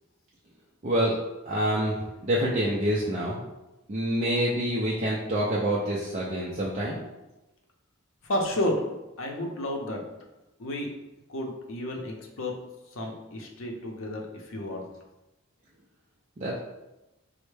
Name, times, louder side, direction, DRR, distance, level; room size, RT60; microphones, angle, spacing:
voice 1, 0.8-1.2 1.5-2.0 2.2-3.4 3.9-7.0 16.4-16.6, equal, 35° right, -5 dB, 0.4 m, -26 dB
voice 2, 8.2-8.8 9.2-10.0 10.6-10.9 11.3-12.6 12.9-14.8, left 1 dB, 75° left, 1 dB, 0.6 m, -31 dB
4.3 x 2.0 x 3.2 m, 1.0 s
head